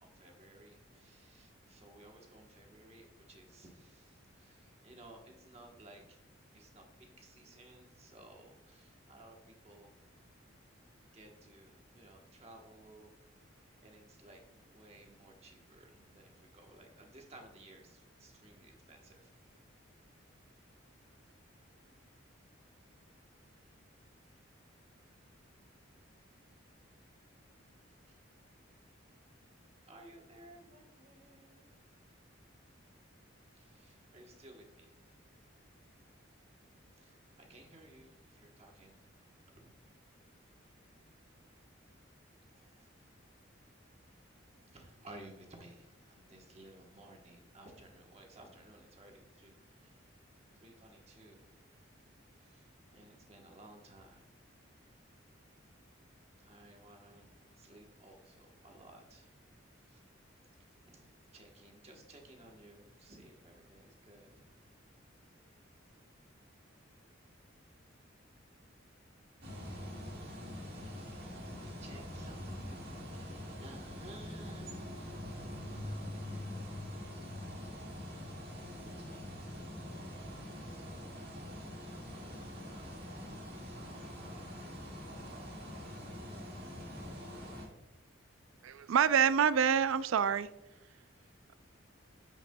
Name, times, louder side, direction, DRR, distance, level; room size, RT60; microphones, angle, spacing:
voice 1, 0.0-6.2 6.5-9.9 11.1-13.1 13.8-19.3 28.1-28.2 29.9-31.7 33.5-35.2 36.9-39.0 39.6-39.7 42.5-42.9 44.7-50.1 50.6-51.9 52.4-54.2 56.4-59.3 59.8-60.0 60.6-64.3 70.7-75.2 75.6-77.9 78.6-83.0 91.1-91.5, right 1 dB, 30° right, 1.1 m, -58 dB
sound 1, 69.4-87.6, left 1 dB, 50° right, 1.8 m, -44 dB
voice 2, 88.6-90.5, right 7 dB, 80° right, 0.4 m, -27 dB
9.1 x 6.5 x 2.2 m
head